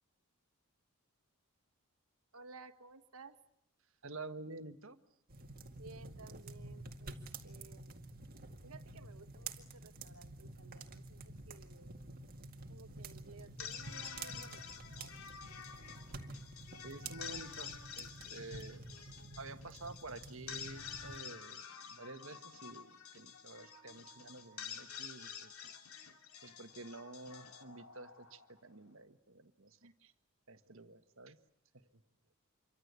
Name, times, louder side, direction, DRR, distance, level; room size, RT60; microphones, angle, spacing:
voice 1, 2.3-3.4 4.1-4.2 5.8-7.1 7.4-7.9 8.6-12.0 12.7-14.7 14.9-15.2 29.8-29.9, right 3 dB, 80° right, 9 dB, 1.5 m, -56 dB
voice 2, 4.0-5.0 16.8-18.8 19.3-25.5 26.4-30.1 30.5-31.4 31.7-32.0, right 3 dB, 65° right, 10 dB, 1.5 m, -50 dB
sound 1, 5.3-21.2, right 3 dB, 40° right, 2.0 m, -50 dB
sound 2, 13.4-28.7, left 7 dB, 80° left, 2.7 m, -49 dB
27.5 x 24.0 x 8.2 m, 0.74 s
head